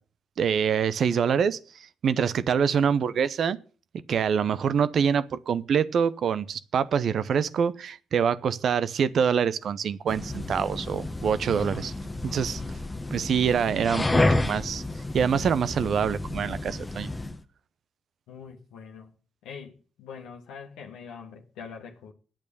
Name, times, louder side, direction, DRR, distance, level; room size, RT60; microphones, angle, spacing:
voice 1, 0.4-1.6 2.0-3.6 4.1-11.9 12.2-12.6 13.1-14.8 15.1-17.1, right 7 dB, 60° right, 0.7 m, -25 dB
sound 1, 10.1-17.4, left 2 dB, 20° left, 1.2 m, -30 dB
voice 2, 18.3-19.1 19.4-22.1, left 6 dB, 75° left, 1.4 m, -43 dB
9.0 x 8.4 x 8.6 m
hypercardioid pair, 40°, 0 cm